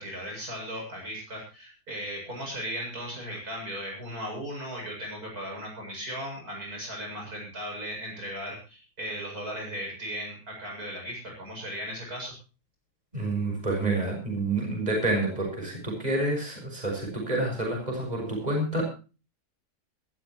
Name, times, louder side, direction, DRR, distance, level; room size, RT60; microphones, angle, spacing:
voice 1, 0.0-12.3, equal, 65° right, 0 dB, 8.3 m, -37 dB
voice 2, 13.1-18.8, right 2 dB, 25° right, 0 dB, 7.0 m, -28 dB
22.0 x 13.5 x 3.1 m, 0.34 s
omnidirectional pair, 1.7 m